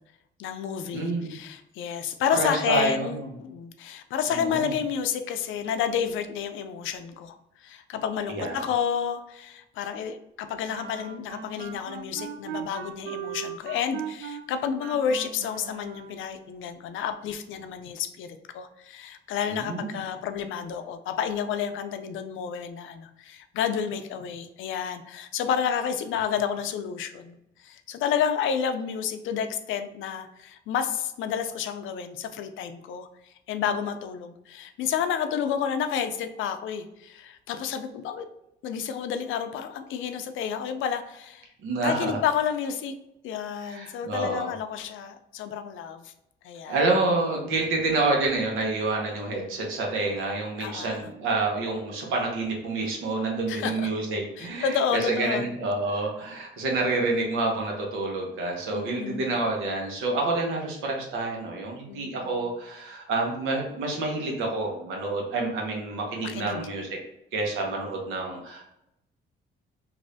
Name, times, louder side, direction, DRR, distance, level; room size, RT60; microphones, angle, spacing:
voice 1, 0.4-7.3 7.6-27.4 27.6-33.1 33.5-38.3 38.6-41.5 41.8-42.9 43.2-46.1 46.4-46.8 50.6-51.1 53.5-53.9 54.4-55.5 58.7-59.4 61.9-62.5 66.2-66.7, left 8 dB, 80° left, 8 dB, 0.4 m, -30 dB
voice 2, 0.9-1.4 2.4-3.2 4.3-4.7 8.3-8.6 19.5-20.0 41.6-42.2 43.6-44.5 46.7-66.9 67.3-68.7, right 3 dB, 90° right, 0 dB, 1.0 m, -28 dB
sound 1, 10.7-16.3, right 8 dB, 65° right, 0.5 m, -39 dB
3.1 x 2.6 x 2.7 m, 0.84 s
cardioid pair, 90°, 20 cm